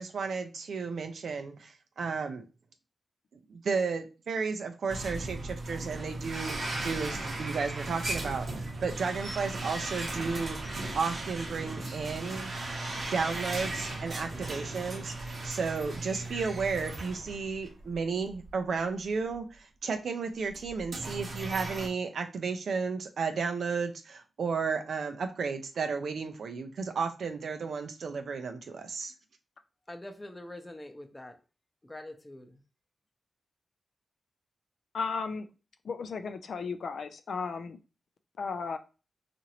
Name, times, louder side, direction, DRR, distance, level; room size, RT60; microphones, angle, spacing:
voice 1, 0.0-2.4 3.5-8.5 8.8-10.6 10.9-12.5 13.1-29.1, right 5 dB, 75° right, 0.5 m, -33 dB
sound 1, 4.9-18.0 18.3-18.5 19.3-19.4 20.5-21.9, right 2 dB, 60° right, 0.8 m, -37 dB
voice 2, 29.9-31.4 31.8-32.6, left 1 dB, 20° left, 0.6 m, -44 dB
voice 3, 34.9-35.5 35.8-37.8 38.4-38.8, left 5 dB, 75° left, 0.3 m, -34 dB
2.9 x 2.5 x 2.8 m
cardioid pair, 45°, 0 cm